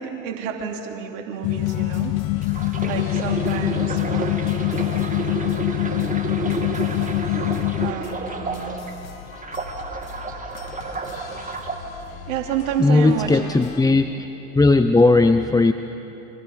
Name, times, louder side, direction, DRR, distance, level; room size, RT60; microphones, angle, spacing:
voice 1, 0.0-2.2 2.8-4.7 7.8-8.8 12.3-13.6 13.9-14.0, right 8 dB, 70° right, 2 dB, 3.0 m, -30 dB
sound 1, 1.4-7.9, left 21 dB, 50° left, 0.7 m, -24 dB
sound 2, 1.6-13.8, left 6 dB, 85° left, 1.4 m, -41 dB
sound 3, 2.4-8.9 9.3-11.8 12.5-12.7, right 3 dB, 20° right, 2.8 m, -30 dB
voice 2, 12.8-14.3 14.5-15.7, left 3 dB, 10° left, 9 dB, 0.8 m, -17 dB
29.5 x 25.0 x 5.2 m, 3.0 s
hypercardioid pair, 75°, 40 cm